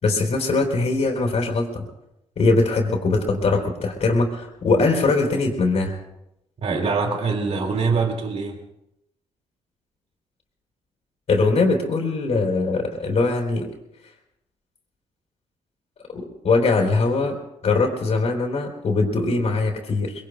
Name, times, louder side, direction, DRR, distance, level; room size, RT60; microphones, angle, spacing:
voice 1, 0.0-1.9 2.4-6.0 11.3-13.7 16.1-17.3 17.6-20.1, left 3 dB, 55° left, -1 dB, 3.6 m, -21 dB
voice 2, 6.6-8.6, right 4 dB, 50° right, 3 dB, 2.3 m, -24 dB
24.0 x 21.5 x 2.3 m, 0.85 s
hypercardioid pair, 55°, 13 cm